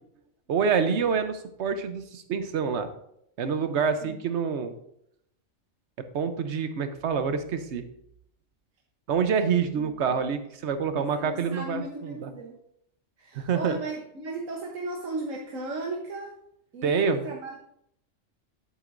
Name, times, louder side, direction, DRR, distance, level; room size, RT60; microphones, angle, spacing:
voice 1, 0.5-2.9 3.4-4.7 6.1-7.8 9.1-12.3 13.3-13.8 16.8-17.3, right 6 dB, 65° right, 9 dB, 1.1 m, -27 dB
voice 2, 11.0-12.6 13.2-16.4 16.7-17.6, right 2 dB, 80° right, 0 dB, 1.4 m, -36 dB
11.0 x 8.2 x 2.6 m, 0.74 s
omnidirectional pair, 1.3 m